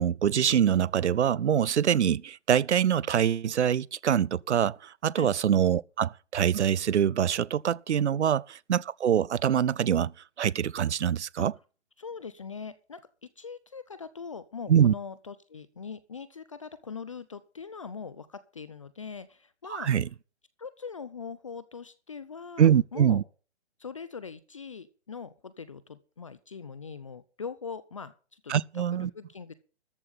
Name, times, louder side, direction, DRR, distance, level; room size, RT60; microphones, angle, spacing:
voice 1, 0.0-10.1 10.4-11.5 14.7-14.9 19.7-20.1 22.6-23.2 28.5-29.1, right 9 dB, 80° right, 0.6 m, -24 dB
voice 2, 12.0-19.9 20.6-23.2 23.8-29.5, left 5 dB, 30° left, 0.6 m, -42 dB
13.5 x 5.6 x 8.5 m
hypercardioid pair, 165°, 34 cm